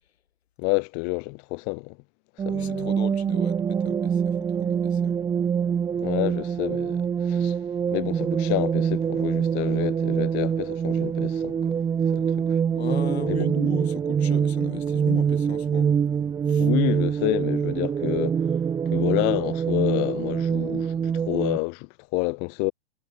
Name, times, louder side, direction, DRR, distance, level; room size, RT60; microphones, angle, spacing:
voice 1, 0.6-2.0 2.5-2.9 6.0-7.6 7.9-11.8 12.1-12.4 13.3-13.5 16.6-18.4 18.9-22.7, left 36 dB, 30° left, 3.9 m, -29 dB
sound 1, 2.4-21.6, right 7 dB, 10° right, 2.1 m, -25 dB
voice 2, 2.5-5.2 12.7-15.9 16.5-16.7, left 10 dB, 70° left, 3.8 m, -37 dB
hypercardioid pair, 165°, 33 cm